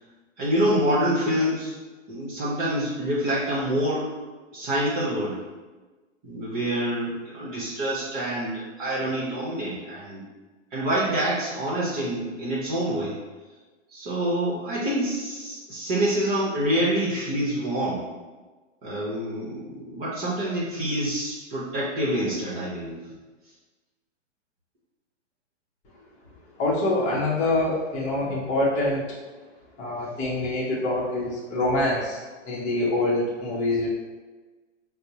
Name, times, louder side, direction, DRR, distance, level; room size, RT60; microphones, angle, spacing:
voice 1, 0.4-1.7 2.1-4.1 4.5-5.4 6.2-10.2 10.7-13.1 13.9-18.0 18.8-23.0, right 1 dB, 40° right, -7 dB, 0.9 m, -26 dB
voice 2, 26.6-29.1 29.8-32.2 32.4-33.9, left 2 dB, 20° left, -5 dB, 0.7 m, -25 dB
4.2 x 2.0 x 2.8 m, 1.3 s
hypercardioid pair, 125°, 38 cm